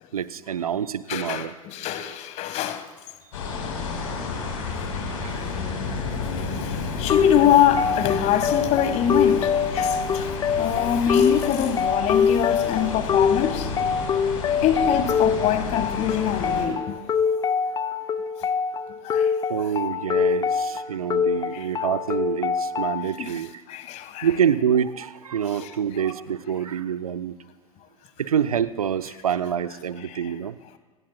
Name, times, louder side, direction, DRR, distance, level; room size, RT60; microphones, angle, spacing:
voice 1, 0.1-1.5 5.1-5.4 19.5-23.5 24.2-27.4 28.2-30.6, right 8 dB, 75° right, 0.7 m, -26 dB
voice 2, 1.1-2.9 5.3-5.5 6.4-10.3 10.6-13.7 14.5-17.0 18.4-18.5 19.0-19.3 21.5-21.7 23.2-23.4 23.7-24.3 25.5-25.7 30.1-30.3, left 10 dB, 40° left, 1.3 m, -24 dB
sound 1, 3.3-16.7, left 4 dB, 65° left, 4.0 m, -31 dB
sound 2, 7.1-23.1, left 6 dB, 20° left, 0.6 m, -24 dB
27.0 x 19.0 x 2.2 m
figure-of-eight pair, 90°, 18 cm